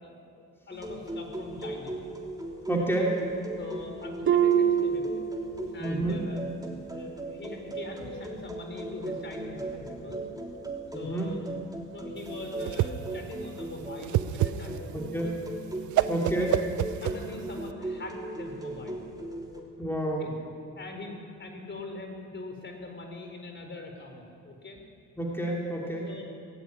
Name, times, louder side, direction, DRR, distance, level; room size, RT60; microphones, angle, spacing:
voice 1, 0.0-2.0 3.6-5.2 5.7-6.4 6.9-10.2 10.9-11.4 11.8-15.3 16.0-16.2 17.0-19.0 20.0-20.3 20.7-21.1 21.4-24.8 26.0-26.2, left 2 dB, 40° left, 3 dB, 4.4 m, -42 dB
sound 1, 0.7-19.6, right 2 dB, 10° right, 3.6 m, -38 dB
voice 2, 2.7-3.2 5.8-6.2 10.9-11.3 14.9-15.3 16.1-16.6 19.8-20.3 25.2-26.1, right 1 dB, 10° left, -2 dB, 3.1 m, -29 dB
Harp, 4.3-6.0 6.4-6.8 7.3-7.5, right 8 dB, 40° right, 1.2 m, -26 dB
Whoosh swoosh swish, 12.2-17.7, right 13 dB, 75° right, 0.7 m, -29 dB
18.5 x 16.0 x 9.7 m, 2.4 s
cardioid pair, 90°, 30 cm